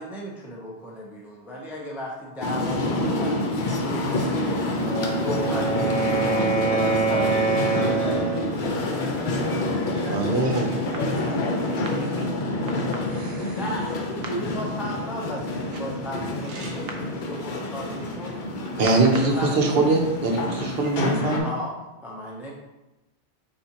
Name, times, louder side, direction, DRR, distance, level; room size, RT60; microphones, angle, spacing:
voice 1, 0.0-4.8 5.2-7.9 13.6-18.4 18.9-19.9 21.4-21.7 22.0-22.5, equal, 5° right, -3 dB, 0.4 m, -35 dB
sound 1, 2.4-21.4, left 2 dB, 55° left, 0.7 m, -27 dB
Wind instrument woodwind instrument, 4.8-8.6, right 4 dB, 25° right, 0.9 m, -25 dB
voice 2, 6.1-11.7, equal, 80° left, -5 dB, 1.6 m, -38 dB
sound 2, 7.2-8.0 8.7-10.0 10.2-11.8 16.3-17.1 17.6-18.6 19.3-20.1 20.8-21.6, right 2 dB, 85° right, 1.1 m, -44 dB
voice 3, 10.1-11.0 12.2-12.3 13.1-13.6 18.8-21.5, right 3 dB, 65° right, 1 dB, 0.8 m, -23 dB
4.2 x 3.6 x 2.8 m, 1.0 s
omnidirectional pair, 1.2 m